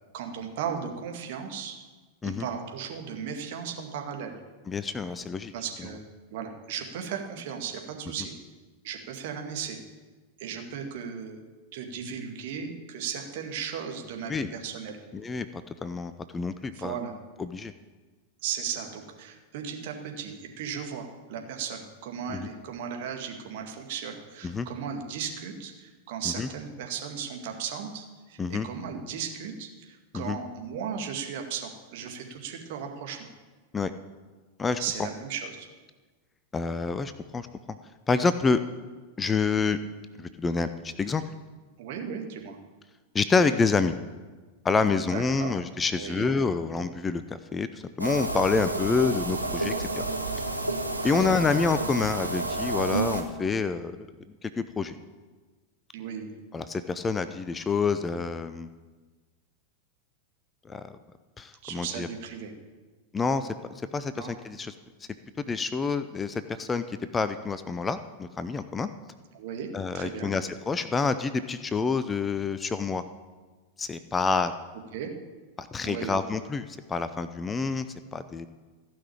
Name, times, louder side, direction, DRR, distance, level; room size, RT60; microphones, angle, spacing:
voice 1, 0.1-1.8 2.2-4.4 5.5-6.1 6.3-8.3 8.8-9.8 10.4-11.4 11.7-15.0 16.7-17.1 18.4-33.3 34.8-35.7 41.8-42.6 45.0-45.5 46.0-46.3 51.0-51.4 55.9-56.3 61.6-62.5 64.1-64.3 69.3-69.7 69.9-70.3 74.9-75.1 75.8-76.1, right 7 dB, 50° right, 3 dB, 2.0 m, -36 dB
voice 2, 4.7-5.5 14.3-14.5 15.1-16.9 17.4-17.7 22.3-22.5 24.4-24.7 26.4-26.5 28.4-28.7 30.1-30.4 33.7-33.9 34.6-34.8 36.5-37.5 38.1-38.6 39.2-39.8 40.2-41.2 43.1-44.0 44.6-50.0 51.0-54.0 54.4-55.0 56.5-58.7 60.7-60.8 61.4-62.1 63.1-63.5 63.9-64.7 65.5-68.9 69.7-73.0 73.8-74.5 75.6-77.9 78.1-78.5, left 4 dB, 15° left, 12 dB, 0.6 m, -28 dB
sound 1, 48.0-53.2, right 2 dB, 85° right, 1.4 m, -30 dB
15.5 x 6.1 x 8.7 m, 1.3 s
figure-of-eight pair, 90°, 0 cm